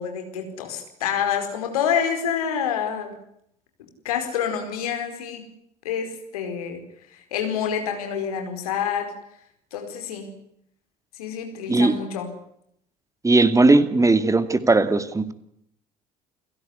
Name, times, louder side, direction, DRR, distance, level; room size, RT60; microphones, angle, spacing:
voice 1, 0.0-3.1 4.0-5.4 5.8-6.8 7.3-9.1 9.7-10.3 11.2-12.3, left 8 dB, 70° left, 5 dB, 4.9 m, -27 dB
voice 2, 13.2-15.3, right 2 dB, 15° right, 12 dB, 2.4 m, -18 dB
29.5 x 16.5 x 9.8 m, 0.73 s
figure-of-eight pair, 55°, 20 cm